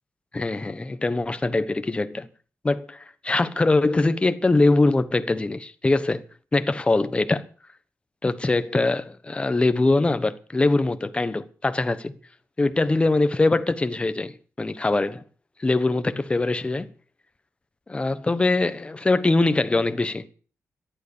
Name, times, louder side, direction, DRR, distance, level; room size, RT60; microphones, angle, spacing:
voice 1, 0.3-2.3 2.6-6.2 6.5-7.4 8.2-12.1 12.6-15.2 15.6-16.9 17.9-20.3, left 2 dB, 20° left, 1.1 m, -22 dB
14.0 x 11.0 x 7.1 m
wide cardioid pair, 145°, 6 cm